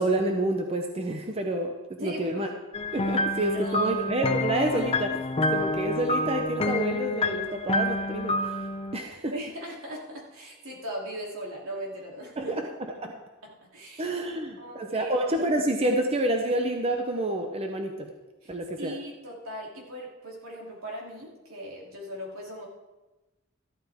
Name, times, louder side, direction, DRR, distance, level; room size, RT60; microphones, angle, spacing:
voice 1, 0.0-2.5 2.9-8.6 8.9-9.3 12.4-13.2 14.0-18.1 18.5-19.0, right 1 dB, 30° right, 3 dB, 0.8 m, -28 dB
voice 2, 2.0-2.5 3.4-3.9 9.3-12.6 13.4-14.1 14.6-15.1 18.4-18.5 18.8-22.7, equal, 75° right, -3 dB, 3.1 m, -39 dB
sound 1, 2.7-9.0, left 2 dB, 25° left, 0.6 m, -28 dB
13.5 x 12.5 x 3.6 m, 1.1 s
head